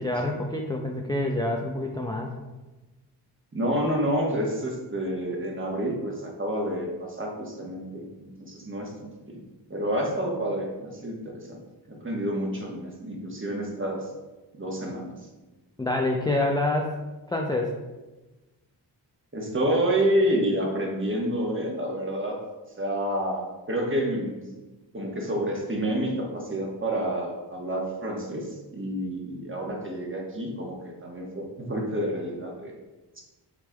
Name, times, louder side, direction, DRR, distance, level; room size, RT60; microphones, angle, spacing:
voice 1, 0.0-2.3 15.8-17.0 17.3-17.7, left 2 dB, 10° left, 0 dB, 0.5 m, -27 dB
voice 2, 3.5-9.4 9.7-11.6 11.9-14.1 14.5-15.1 19.3-22.4 22.8-24.4 24.9-32.7 33.2-33.3, right 1 dB, 25° right, 0 dB, 1.2 m, -29 dB
6.2 x 3.4 x 2.2 m, 1.1 s
supercardioid pair, 40°, 48 cm